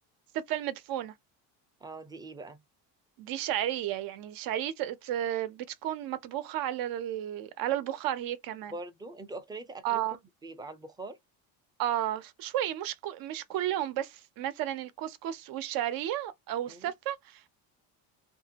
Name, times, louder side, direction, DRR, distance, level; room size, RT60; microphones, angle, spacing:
voice 1, 0.3-1.1 3.2-8.7 9.8-10.2 11.8-17.5, right 12 dB, 60° right, 0.7 m, -33 dB
voice 2, 1.8-2.6 8.7-10.0 10.4-11.2 16.7-16.9, right 2 dB, 10° right, 0.5 m, -42 dB
2.9 x 2.6 x 2.8 m
cardioid pair, 130°, 40 cm